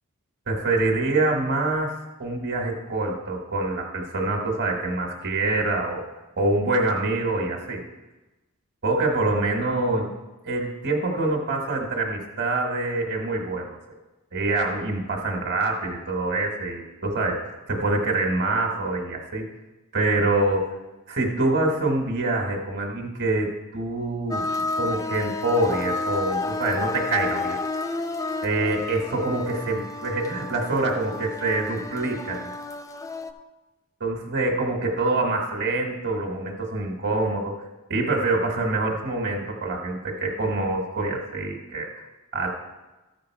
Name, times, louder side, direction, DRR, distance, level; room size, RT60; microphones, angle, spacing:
voice 1, 0.5-6.0 6.4-7.8 8.8-10.1 10.4-13.8 14.3-17.4 17.7-19.5 19.9-20.7 21.1-27.6 28.4-32.5 34.0-37.5 37.9-41.9 42.3-42.5, right 2 dB, 50° right, 1 dB, 1.4 m, -25 dB
sound 1, 24.3-33.3, left 3 dB, 15° left, 0.4 m, -31 dB
13.5 x 5.1 x 4.6 m, 1.1 s
head